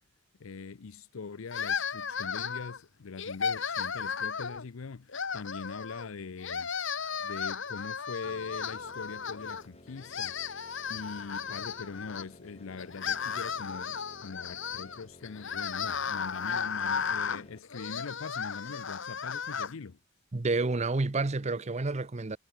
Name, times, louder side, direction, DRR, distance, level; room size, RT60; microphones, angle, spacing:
voice 1, 0.4-6.7 7.2-10.4 10.9-20.0, left 5 dB, 80° left, 0.6 m, -42 dB
sound 1, 1.5-2.8 3.2-4.6 5.1-6.1 6.4-9.7 10.0-12.2 12.8-19.7, left 6 dB, 65° left, 1.4 m, -35 dB
sound 2, 8.2-17.6, left 1 dB, 30° left, 5.2 m, -54 dB
voice 2, 20.3-22.4, right 3 dB, 35° right, 0.7 m, -29 dB
head